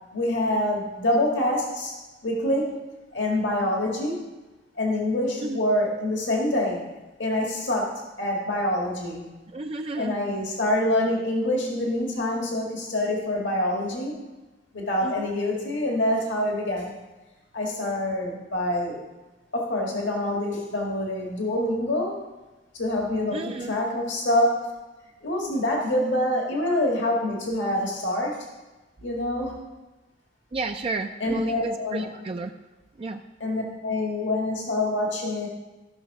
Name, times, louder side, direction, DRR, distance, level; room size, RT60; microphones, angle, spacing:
voice 1, 0.1-2.0 2.2-2.8 3.1-4.2 4.8-6.8 7.2-9.3 10.0-14.2 14.7-16.9 17.5-19.0 19.5-22.2 22.7-23.4 23.7-24.7 25.2-28.5 29.0-29.6 31.2-32.1 33.4-35.5, left 1 dB, 80° left, -1 dB, 1.8 m, -26 dB
voice 2, 9.5-10.3 15.0-15.3 23.3-23.7 30.5-32.5 33.0-33.2, right 3 dB, 30° right, 5 dB, 0.4 m, -32 dB
14.5 x 6.3 x 4.8 m, 1.1 s
head